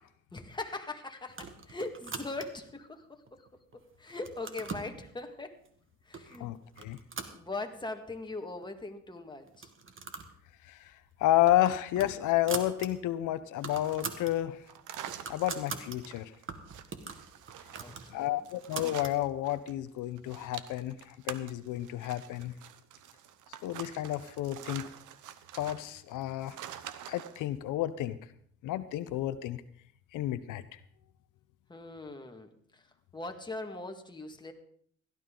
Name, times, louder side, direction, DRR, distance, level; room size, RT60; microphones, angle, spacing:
voice 1, 0.3-5.6 6.0-6.5 7.3-9.7 17.8-18.4 31.7-34.5, left 2 dB, 15° left, 4 dB, 1.8 m, -41 dB
sound 1, 1.3-2.7 3.3-3.8 4.1-4.9 5.7-5.8 6.1-6.4 6.7-8.0 8.3-8.4 8.6-8.7 9.5-10.4 10.7-10.9 11.2-12.9 13.2-13.3 13.5-14.3 14.8-16.0 16.5-19.2, right 5 dB, 40° right, 1.7 m, -42 dB
voice 2, 6.4-7.0 10.7-10.9 11.2-14.6 15.3-16.3 18.1-22.5 23.6-24.9 25.5-26.6 27.1-28.2 28.6-29.6 30.1-30.8, left 14 dB, 90° left, 13 dB, 0.7 m, -31 dB
sound 2, 13.6-19.7 20.0-27.4, right 10 dB, 85° right, 1.0 m, -47 dB
16.5 x 12.5 x 3.9 m, 0.63 s
cardioid pair, 90°, 30 cm